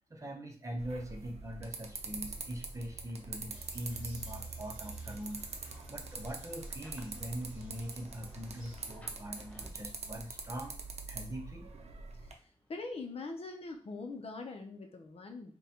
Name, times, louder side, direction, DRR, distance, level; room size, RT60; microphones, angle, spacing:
voice 1, 0.1-10.8 11.1-11.7, equal, 30° right, 3 dB, 0.7 m, -42 dB
sound 1, 0.8-12.3, right 3 dB, 80° right, 0.6 m, -44 dB
Bird vocalization bird call bird song, 3.5-8.8, equal, 15° right, 1.3 m, -55 dB
Rain, 4.7-13.5, equal, 15° left, 0.7 m, -63 dB
voice 2, 12.7-15.6, left 3 dB, 65° left, 4 dB, 0.6 m, -42 dB
3.7 x 2.2 x 4.2 m, 0.39 s
wide cardioid pair, 135°, 11 cm